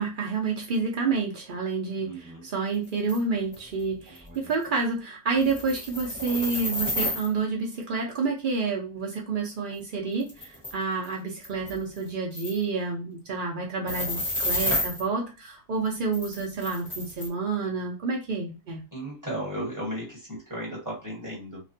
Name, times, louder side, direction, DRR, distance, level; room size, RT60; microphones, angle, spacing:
voice 1, 0.0-18.8, right 4 dB, 75° right, 0 dB, 0.4 m, -29 dB
voice 2, 2.0-2.4 4.1-4.5 18.9-21.6, right 1 dB, 15° right, -4 dB, 1.1 m, -35 dB
sound 1, 3.1-3.2 3.5-3.6 4.1-4.2 4.4-4.6 5.3-7.3 9.7-9.8 10.2-10.7 11.0-11.1 11.4-12.0 12.3-12.6 13.9-15.0 16.1-17.3, left 1 dB, 20° left, 1.0 m, -30 dB
3.2 x 2.1 x 2.6 m, 0.30 s
omnidirectional pair, 1.7 m